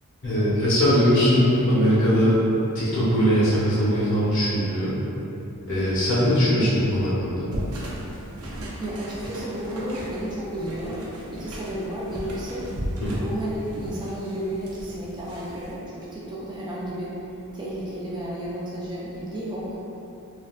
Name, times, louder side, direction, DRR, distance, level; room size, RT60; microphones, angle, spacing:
voice 1, 0.2-2.4 2.7-5.0 5.7-7.5 13.0-13.2, equal, 55° left, -9 dB, 0.9 m, -20 dB
sound 1, 7.5-15.7, equal, 90° right, 0.6 m, -36 dB
voice 2, 8.8-12.7 13.2-17.1 17.5-19.8, right 1 dB, 20° right, -7 dB, 0.3 m, -32 dB
3.3 x 2.3 x 2.4 m, 2.9 s
head